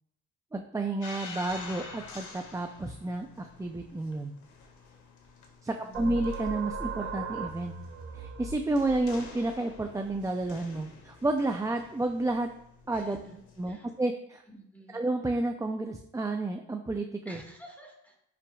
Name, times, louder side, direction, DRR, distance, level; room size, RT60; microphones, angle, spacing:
voice 1, 0.5-4.3 5.6-7.7 8.1-12.5 12.9-13.2 13.6-14.4 14.9-17.4, right 2 dB, 10° right, 4 dB, 0.5 m, -31 dB
sound 1, 1.0-13.6, left 4 dB, 80° left, 1.6 m, -49 dB
voice 2, 5.6-6.1 12.9-13.9 14.5-15.0 17.3-18.3, right 1 dB, 5° left, 0 dB, 1.9 m, -50 dB
sound 2, 5.9-11.2, right 4 dB, 50° right, 1.6 m, -39 dB
10.0 x 5.9 x 2.4 m, 0.78 s
cardioid pair, 90°, 30 cm